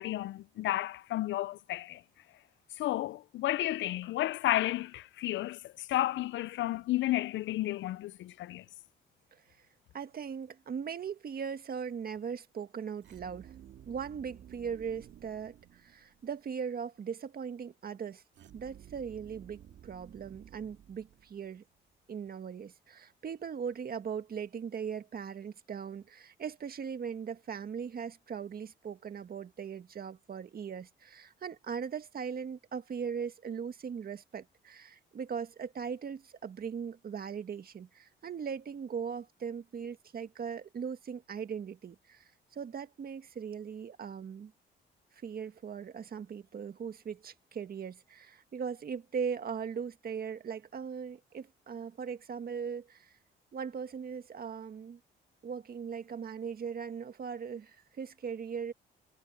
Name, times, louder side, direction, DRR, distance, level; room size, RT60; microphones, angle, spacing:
voice 1, 0.0-2.0 2.8-8.6, left 15 dB, 70° left, 0.5 m, -32 dB
voice 2, 9.9-13.5 13.9-18.2 18.5-21.6 22.1-44.5 45.2-53.1 53.5-55.0 55.4-58.7, right 7 dB, 50° right, 1.8 m, -39 dB
sound 1, 13.0-16.3 18.3-21.6, right 10 dB, 65° right, 1.9 m, -54 dB
cardioid pair, 90°, 20 cm